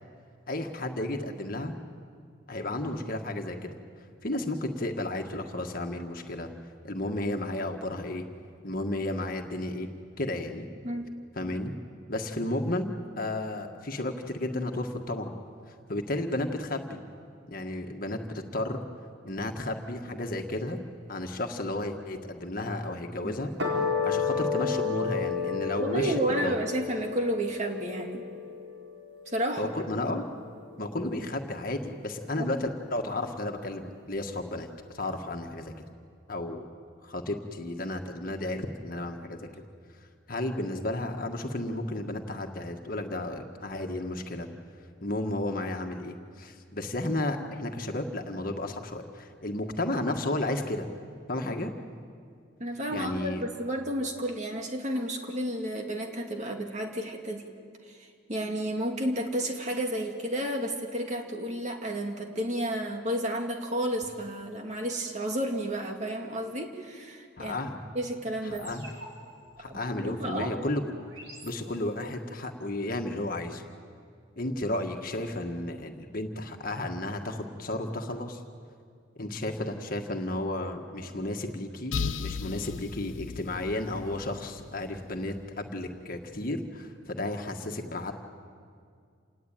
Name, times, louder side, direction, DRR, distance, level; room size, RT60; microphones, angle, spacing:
voice 1, 0.5-1.7 2.5-3.7 4.2-6.5 6.8-8.2 8.6-9.9 10.2-10.7 11.4-11.7 12.1-15.3 15.9-17.0 17.5-18.8 19.2-20.8 21.1-26.5 29.6-30.3 30.8-34.7 34.9-35.7 36.3-36.7 37.0-39.5 40.3-44.5 45.0-50.9 51.3-51.7 52.9-53.4 67.4-67.8 68.4-68.9 69.6-70.9 71.4-73.6 74.4-78.4 79.2-88.1, left 1 dB, 45° left, 4 dB, 1.8 m, -33 dB
sound 1, 23.6-30.1, left 5 dB, 70° right, 4.5 m, -32 dB
voice 2, 25.8-28.3 29.3-29.7 32.4-32.5 52.6-57.4 57.9-67.6 67.9-68.7 69.7-70.6, right 1 dB, 35° right, 3 dB, 2.3 m, -31 dB
sound 2, 68.5-72.2, right 1 dB, 90° right, 5.6 m, -50 dB
sound 3, 81.9-85.6, left 5 dB, 80° left, 0.7 m, -36 dB
28.0 x 19.0 x 9.2 m, 2.2 s
head